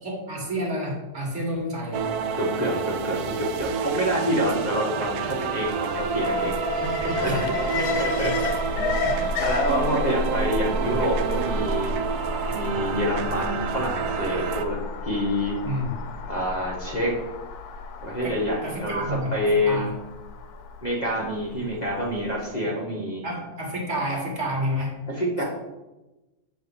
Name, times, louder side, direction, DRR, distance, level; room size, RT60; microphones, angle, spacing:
voice 1, 0.0-2.1 7.2-7.5 7.8-8.3 9.0-9.8 10.8-10.9 15.6-15.9 18.2-18.4 18.6-19.9 23.2-24.9 25.4-25.5, equal, 45° right, -1 dB, 1.7 m, -30 dB
sound 1, 1.9-14.6, right 7 dB, 75° right, 1.1 m, -29 dB
voice 2, 2.4-6.6 7.0-7.1 7.7-8.3 8.7-8.9 9.2-12.0 12.5-14.8 15.0-15.6 16.3-17.1 18.0-19.0 19.3-19.9 20.8-23.2 25.1-25.4, equal, 30° left, -4 dB, 1.3 m, -27 dB
Alarm, 5.9-22.0 22.3-22.4, left 3 dB, 75° left, 1.1 m, -31 dB
7.8 x 3.3 x 5.5 m, 1.0 s
omnidirectional pair, 1.7 m